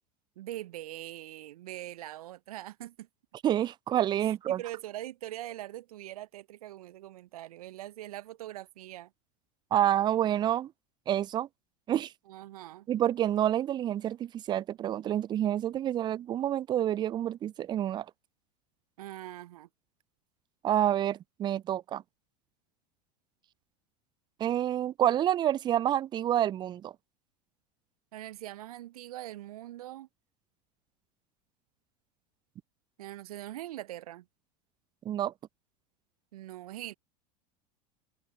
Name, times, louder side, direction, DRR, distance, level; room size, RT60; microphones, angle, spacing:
voice 1, 0.4-3.1 4.2-9.1 12.3-12.9 19.0-19.7 28.1-30.1 33.0-34.2 36.3-37.0, right 14 dB, 65° right, 0.7 m, -42 dB
voice 2, 3.4-4.6 9.7-10.7 11.1-11.5 11.9-12.1 12.9-18.1 20.6-22.0 24.4-26.9 35.1-35.3, right 11 dB, 20° right, 0.4 m, -28 dB
figure-of-eight pair, 80°, 21 cm